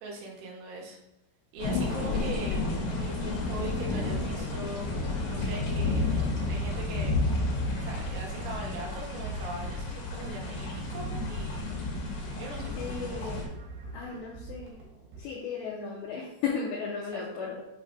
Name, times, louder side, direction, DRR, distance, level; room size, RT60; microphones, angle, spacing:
voice 1, 0.0-1.0 1.5-2.6 2.9-4.9 5.3-7.2 7.8-11.5 12.3-13.3 17.1-17.5, right 3 dB, 85° right, -2 dB, 4.2 m, -41 dB
sound 1, 1.5-14.1, equal, 40° right, 1.1 m, -47 dB
sound 2, 1.6-13.4, left 3 dB, 65° left, 1.9 m, -31 dB
sound 3, 2.1-15.2, right 3 dB, 60° right, 3.4 m, -47 dB
voice 2, 12.8-13.5 13.9-14.8 15.2-17.6, left 5 dB, 85° left, -2 dB, 2.5 m, -35 dB
8.0 x 6.2 x 2.5 m, 0.96 s
omnidirectional pair, 6.0 m